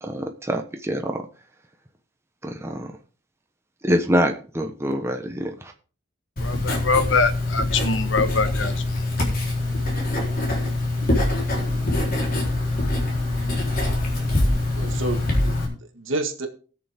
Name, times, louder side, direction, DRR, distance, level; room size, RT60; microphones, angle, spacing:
voice 1, 0.0-1.2 2.4-2.9 3.8-5.7, equal, 15° right, 4 dB, 1.1 m, -25 dB
voice 2, 6.4-8.8, left 4 dB, 70° left, 10 dB, 1.1 m, -23 dB
Writing, 6.4-15.7, left 2 dB, 50° left, 3.8 m, -24 dB
voice 3, 14.8-16.5, right 2 dB, 80° right, 5 dB, 1.9 m, -30 dB
18.5 x 6.9 x 3.6 m, 0.39 s
head